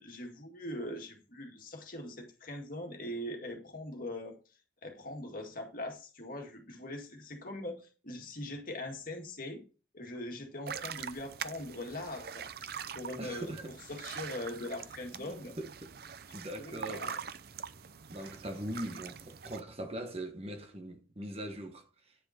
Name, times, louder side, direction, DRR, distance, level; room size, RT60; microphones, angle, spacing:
voice 1, 0.0-4.4 4.8-9.6 9.9-12.7 12.9-13.5 13.9-15.6 16.3-17.2, left 1 dB, 50° left, 2.0 m, -41 dB
sound 1, 10.7-19.6, right 7 dB, 55° right, 0.6 m, -44 dB
voice 2, 13.2-13.7 15.2-15.9 16.3-17.1 18.1-22.1, right 1 dB, 30° right, 1.2 m, -41 dB
9.6 x 5.7 x 4.3 m
head